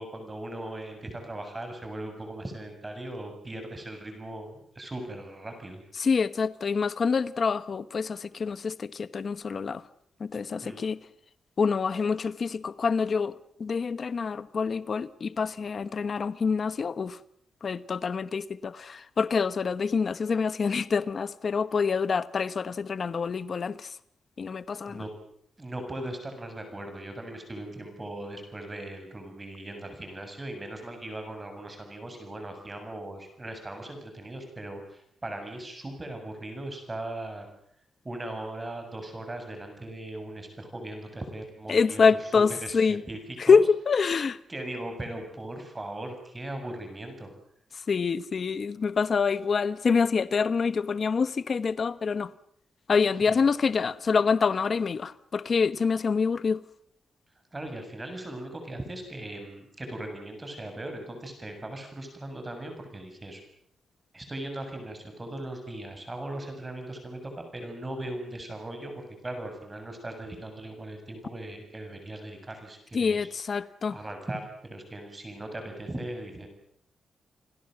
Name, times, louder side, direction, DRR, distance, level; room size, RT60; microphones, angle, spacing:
voice 1, 0.0-5.8 10.6-10.9 24.9-25.1 25.6-37.5 38.0-42.3 42.6-43.6 44.5-47.3 53.3-53.4 57.5-63.4 64.1-73.3 73.9-76.5, right 1 dB, 20° right, 7.6 m, -39 dB
voice 2, 6.0-9.8 10.2-11.0 11.6-13.3 13.6-17.2 17.6-23.9 24.4-25.0 41.7-43.0 43.4-44.4 47.7-52.3 52.9-56.6 72.9-74.0, left 5 dB, 40° left, 1.1 m, -26 dB
29.0 x 21.5 x 7.9 m
wide cardioid pair, 155°, 0 cm